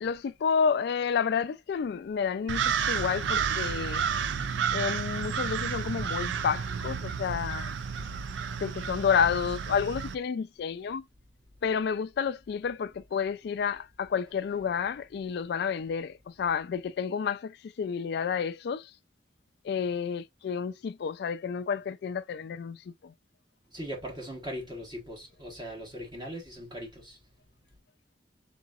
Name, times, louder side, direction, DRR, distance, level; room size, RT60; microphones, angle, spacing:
voice 1, 0.0-4.1 4.7-7.7 8.6-11.0 11.6-19.0 19.6-23.1, left 6 dB, 60° left, 0.3 m, -30 dB
sound 1, 2.5-10.2, right 7 dB, 80° right, 0.4 m, -31 dB
voice 2, 23.7-27.2, equal, 25° right, 1.1 m, -40 dB
4.0 x 3.6 x 2.4 m
head